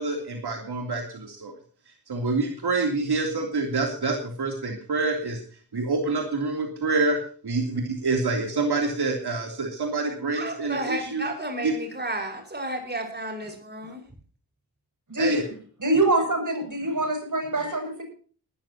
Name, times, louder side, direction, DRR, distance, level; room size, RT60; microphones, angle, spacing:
voice 1, 0.0-1.5 1.9-5.4 5.7-7.2 7.4-11.2 11.6-11.7 15.2-15.4 15.9-16.0, right 3 dB, 75° right, 2 dB, 3.2 m, -27 dB
voice 2, 10.3-14.0, right 1 dB, 25° right, 2 dB, 5.5 m, -32 dB
voice 3, 15.1-15.4 15.8-18.0, right 1 dB, 50° right, 4 dB, 7.1 m, -24 dB
19.5 x 13.5 x 2.9 m, 0.43 s
wide cardioid pair, 70°, 39 cm